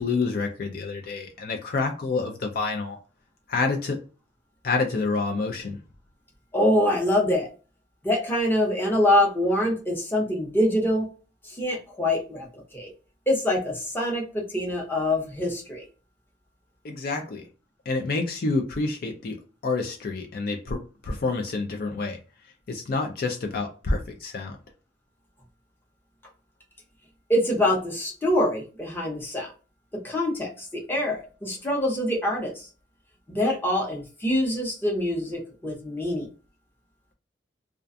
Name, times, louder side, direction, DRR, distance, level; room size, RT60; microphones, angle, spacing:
voice 1, 0.0-3.0 3.5-4.0 4.6-5.8 16.8-17.4 17.9-22.2 22.7-24.6, left 3 dB, 55° left, 3 dB, 0.4 m, -28 dB
voice 2, 6.5-7.5 8.0-11.1 11.4-12.9 13.3-15.9 27.3-29.5 29.9-32.7 33.3-36.3, left 1 dB, 10° left, -2 dB, 0.8 m, -25 dB
2.4 x 2.2 x 2.5 m, 0.34 s
head